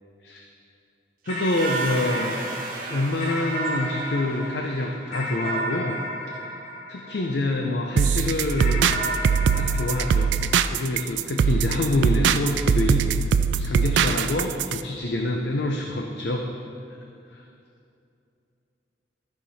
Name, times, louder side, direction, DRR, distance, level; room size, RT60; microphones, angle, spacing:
sound 1, 1.2-5.1, right 3 dB, 45° right, 1.2 m, -36 dB
voice 1, 1.3-2.4 2.9-6.0 6.9-8.9 9.5-10.3 10.7-16.5 16.9-17.0 17.3-17.4, left 2 dB, 65° left, 2 dB, 0.6 m, -26 dB
sound 2, 1.3-7.9 8.6-11.3, right 1 dB, 40° left, 2.1 m, -33 dB
sound 3, 8.0-14.8, right 6 dB, 75° right, 0.3 m, -22 dB
13.5 x 5.8 x 4.1 m, 2.5 s
head